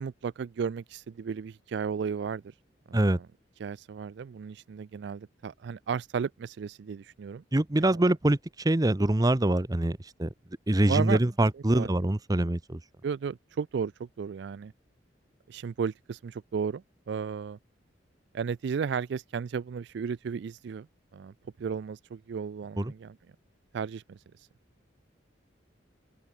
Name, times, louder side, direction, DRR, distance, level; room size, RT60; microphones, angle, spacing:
voice 1, 0.0-2.4 2.9-3.3 3.6-7.4 7.8-8.1 10.9-11.2 11.7-11.9 13.0-14.7 15.5-17.6 18.3-20.9 21.1-21.3 21.6-23.1 23.7-24.2, right 6 dB, 60° right, 0.3 m, -34 dB
voice 2, 7.5-10.3 10.7-12.8 22.8-22.9, right 1 dB, 20° right, 0.7 m, -24 dB
open air
head